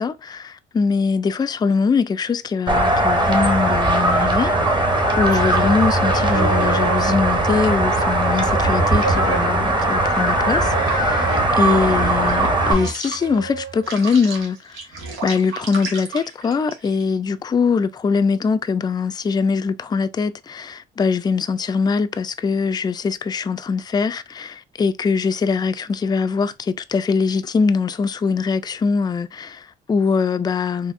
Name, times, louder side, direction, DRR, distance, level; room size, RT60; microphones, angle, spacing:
voice 1, 0.0-4.5 5.2-11.3 11.6-14.8 15.2-30.9, left 5 dB, 20° left, 0.3 m, -22 dB
sound 1, 2.7-12.7, right 1 dB, 25° right, 0.9 m, -19 dB
sound 2, 5.0-9.9 10.5-17.1, right 4 dB, 90° right, 1.3 m, -30 dB
4.1 x 2.7 x 2.6 m
cardioid pair, 90°, 20 cm